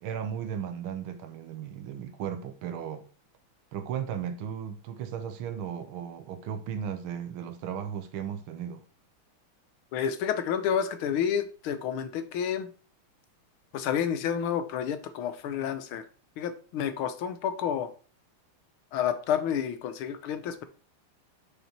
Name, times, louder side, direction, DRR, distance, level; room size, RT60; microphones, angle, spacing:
voice 1, 0.0-3.1 3.7-8.8, right 8 dB, 75° right, 1.7 m, -35 dB
voice 2, 9.9-12.7 13.7-16.0 16.4-17.9 18.9-20.6, left 8 dB, 80° left, 1.6 m, -30 dB
6.2 x 5.6 x 4.3 m
omnidirectional pair, 2.4 m